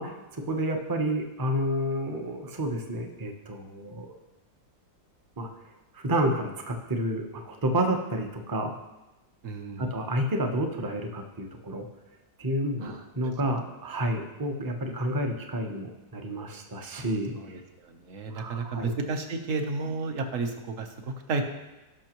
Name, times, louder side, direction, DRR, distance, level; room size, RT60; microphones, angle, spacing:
voice 1, 0.0-4.1 5.4-5.5 5.9-8.7 9.8-11.9 12.4-17.3 18.3-18.9, right 1 dB, 25° right, 3 dB, 0.4 m, -30 dB
voice 2, 9.4-9.9 12.8-13.0 17.4-21.4, right 3 dB, 50° right, 5 dB, 1.1 m, -32 dB
18.0 x 6.1 x 3.0 m, 1.0 s
omnidirectional pair, 1.9 m